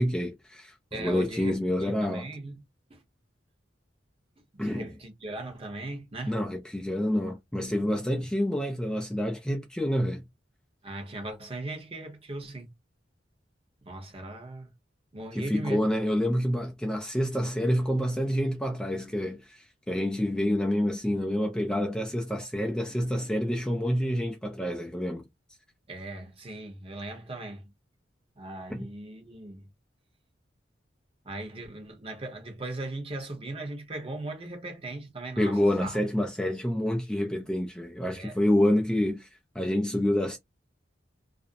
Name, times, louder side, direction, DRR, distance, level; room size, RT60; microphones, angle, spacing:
voice 1, 0.0-2.3 4.6-4.9 6.3-10.2 15.3-25.2 28.7-28.8 35.4-39.3 39.6-40.4, left 1 dB, 5° left, 0.3 m, -28 dB
voice 2, 0.9-2.6 2.9-3.0 4.5-6.4 7.1-7.3 8.1-8.2 10.8-12.7 13.8-14.7 15.1-15.9 25.9-27.7 28.4-29.7 31.2-36.0 38.1-38.4, right 2 dB, 30° right, 0.8 m, -38 dB
2.5 x 2.0 x 2.5 m
head